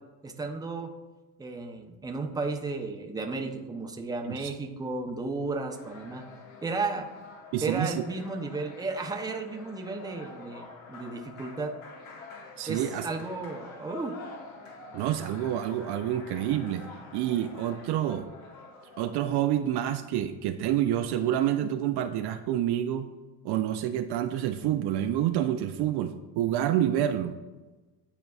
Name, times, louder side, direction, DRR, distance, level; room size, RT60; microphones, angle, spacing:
voice 1, 0.2-0.9 1.4-6.2 6.6-7.1 7.6-11.7 12.7-14.1, right 3 dB, 10° right, 3 dB, 0.6 m, -33 dB
sound 1, 5.7-19.4, left 3 dB, 75° left, 1.3 m, -47 dB
voice 2, 7.5-7.9 12.6-13.1 14.9-16.8 17.1-18.3 19.0-23.1 23.4-27.4, right 11 dB, 60° right, 8 dB, 0.5 m, -28 dB
10.0 x 4.0 x 2.3 m, 1.2 s
supercardioid pair, 100°, 47 cm